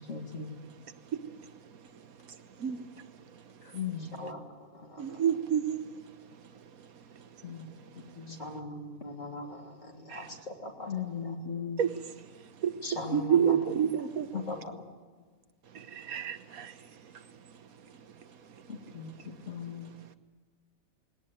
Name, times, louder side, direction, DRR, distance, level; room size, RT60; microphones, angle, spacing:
voice 1, 0.1-0.5 3.7-4.1 7.4-7.7 8.3-8.4 10.9-11.8 14.3-14.4 18.7-19.1 19.5-19.9, left 7 dB, 55° left, 2.3 m, -37 dB
voice 2, 4.0-5.4 8.3-11.4 12.8-14.1 14.3-14.7, left 1 dB, 30° left, 3.2 m, -41 dB
voice 3, 5.0-5.8 11.8-11.9 12.6-12.7 13.1-14.3 16.1-16.7, right 8 dB, 90° right, 1.5 m, -27 dB
19.5 x 18.0 x 9.2 m
omnidirectional pair, 1.4 m